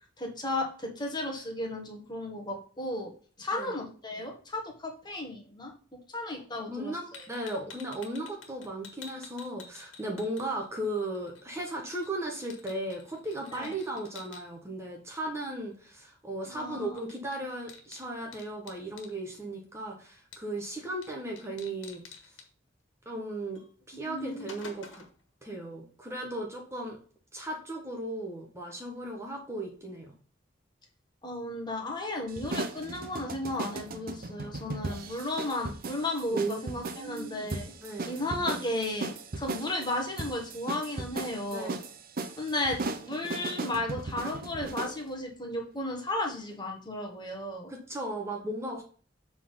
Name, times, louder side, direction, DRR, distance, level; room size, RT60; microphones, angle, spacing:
voice 1, 0.2-3.1 3.4-7.3 13.5-13.7 16.5-17.0 23.9-24.4 31.2-37.7 38.1-41.8 42.4-47.7, left 2 dB, 25° left, 1 dB, 1.6 m, -34 dB
voice 2, 6.6-22.0 23.0-23.6 23.9-25.0 25.4-27.0 27.3-30.1 36.3-37.5 37.8-38.2 41.5-41.7 47.7-48.8, right 1 dB, 15° right, 0 dB, 1.2 m, -36 dB
sound 1, 7.1-10.9 11.1-14.4 16.6-16.7 17.0-19.1 20.3-20.7 21.0-21.1 21.4-22.5 23.5-23.7 24.0-25.2, left 5 dB, 90° left, 1.6 m, -49 dB
sound 2, 32.3-45.0, right 2 dB, 50° right, 0.8 m, -37 dB
7.4 x 3.9 x 5.5 m, 0.42 s
head